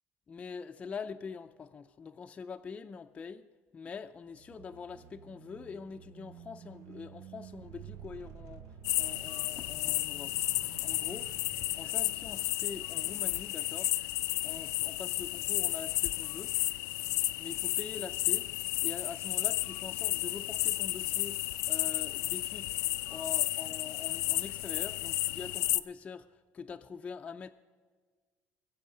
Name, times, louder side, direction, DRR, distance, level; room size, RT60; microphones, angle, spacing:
voice 1, 0.3-3.4 3.7-10.3 10.8-11.3 11.7-13.9 14.4-16.5 17.4-18.5 18.8-22.7 23.1-27.5, left 5 dB, 25° left, 6 dB, 0.4 m, -44 dB
sound 1, 4.3-13.0, right 9 dB, 70° right, 0.6 m, -51 dB
sound 2, 8.8-25.8, left 18 dB, 85° left, 0.4 m, -32 dB
21.0 x 7.7 x 5.0 m, 1.5 s
cardioid pair, 145°, 5 cm